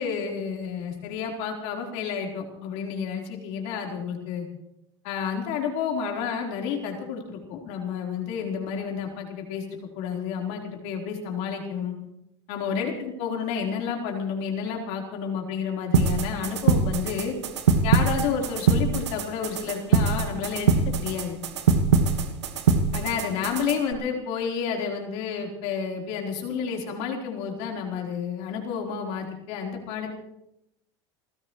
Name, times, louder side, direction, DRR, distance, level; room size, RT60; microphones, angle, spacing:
voice 1, 0.0-4.5 5.0-9.6 9.9-11.9 12.5-17.3 17.8-21.4 22.9-30.1, left 6 dB, 65° left, 0 dB, 4.2 m, -30 dB
sound 1, 15.9-23.9, right 5 dB, 85° right, 1.7 m, -23 dB
29.0 x 15.0 x 3.2 m, 0.85 s
hypercardioid pair, 95°, 14 cm